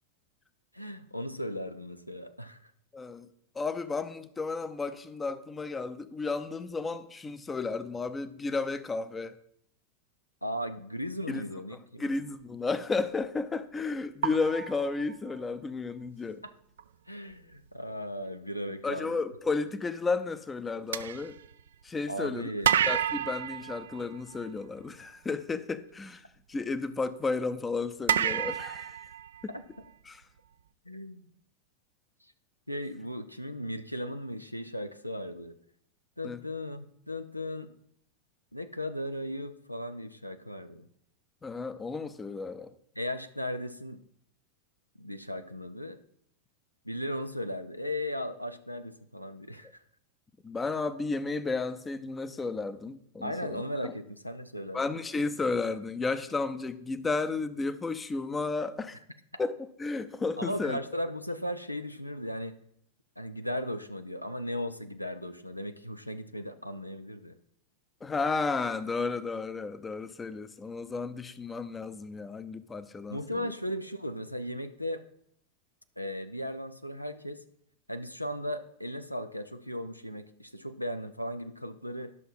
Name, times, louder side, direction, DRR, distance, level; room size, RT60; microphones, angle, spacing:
voice 1, 0.7-2.7 10.4-12.2 16.4-16.5 17.1-19.2 22.1-22.8 29.5-29.6 30.9-31.3 32.7-35.6 36.2-37.7 38.5-40.9 42.9-44.0 45.0-46.0 46.8-49.8 53.2-54.9 60.4-62.6 63.2-67.4 73.1-75.0 76.0-77.4 77.9-82.1, equal, 90° left, 0.6 m, -37 dB
voice 2, 2.9-3.3 3.5-9.4 11.3-11.4 12.0-16.4 18.8-21.4 21.8-22.5 22.8-29.0 29.4-29.5 30.1-30.2 36.2-36.4 41.4-42.7 50.4-53.9 54.7-59.0 59.4-60.8 68.0-73.5, left 4 dB, 15° left, 0.7 m, -33 dB
sound 1, 13.0-13.3 14.2-15.6 16.8-16.9 17.3-17.5 20.9-22.1 22.6-24.7 28.1-29.9, right 9 dB, 65° right, 0.4 m, -30 dB
11.0 x 6.1 x 5.5 m
figure-of-eight pair, 90°, 0 cm